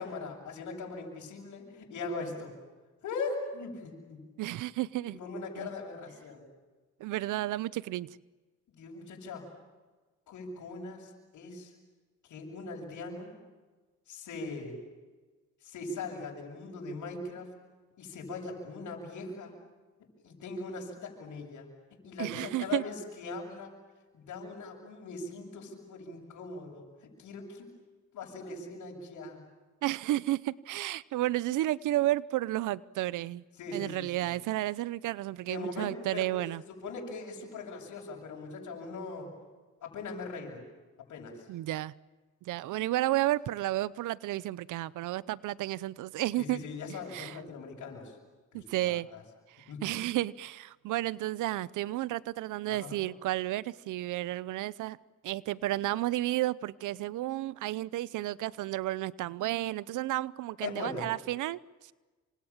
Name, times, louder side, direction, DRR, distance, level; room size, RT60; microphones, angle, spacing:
voice 1, 0.0-2.5 3.0-4.2 5.2-6.4 8.7-9.4 10.3-11.7 12.3-13.3 14.1-14.8 15.6-17.5 18.0-19.5 20.2-21.7 22.0-23.7 24.1-27.7 28.1-29.4 33.6-34.3 35.5-36.2 36.8-39.3 39.8-40.6 41.1-41.5 46.4-48.2 48.5-49.2 49.7-49.9 52.7-53.0 60.6-61.1, left 3 dB, 75° left, 0 dB, 7.6 m, -40 dB
voice 2, 4.4-5.2 5.6-5.7 7.0-8.2 22.2-22.8 29.8-33.4 33.7-36.6 41.5-41.9 42.4-46.6 47.1-47.4 48.5-49.1 49.5-55.0 55.2-61.6, right 15 dB, 85° right, 21 dB, 0.8 m, -32 dB
28.5 x 26.5 x 7.4 m, 1.3 s
cardioid pair, 90°, 30 cm